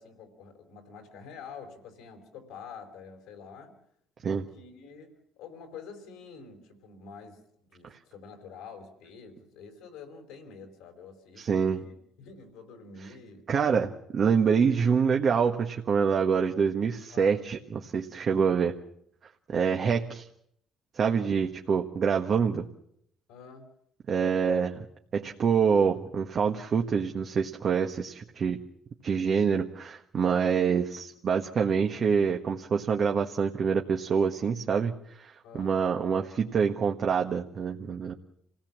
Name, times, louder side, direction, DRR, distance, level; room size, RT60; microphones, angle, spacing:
voice 1, 0.0-3.7 4.2-11.9 12.2-14.1 17.1-17.4 23.3-23.7 35.4-35.8, left 5 dB, 85° left, 5 dB, 4.8 m, -47 dB
voice 2, 11.4-11.8 13.5-13.9 14.1-18.7 19.5-20.3 20.9-22.7 24.1-24.8 25.1-28.6 29.0-34.9 35.2-38.2, right 6 dB, 50° right, 2 dB, 1.4 m, -26 dB
27.0 x 17.5 x 7.4 m, 0.72 s
supercardioid pair, 80°, 0 cm